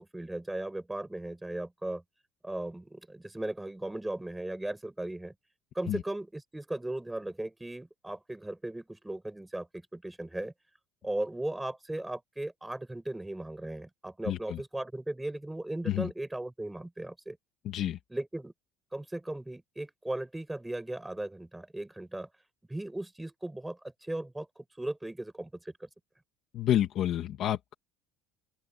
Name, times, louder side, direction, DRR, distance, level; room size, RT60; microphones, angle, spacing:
voice 1, 0.0-2.0 2.4-5.3 5.7-10.5 11.0-17.4 18.1-18.5 18.9-22.3 22.7-24.5 24.8-25.5 25.8-25.9, right 1 dB, 5° right, 5.9 m, -37 dB
voice 2, 14.3-14.6 15.9-16.1 17.6-18.0 26.5-27.7, left 11 dB, 35° left, 2.2 m, -29 dB
open air
cardioid pair, 175°, 0 cm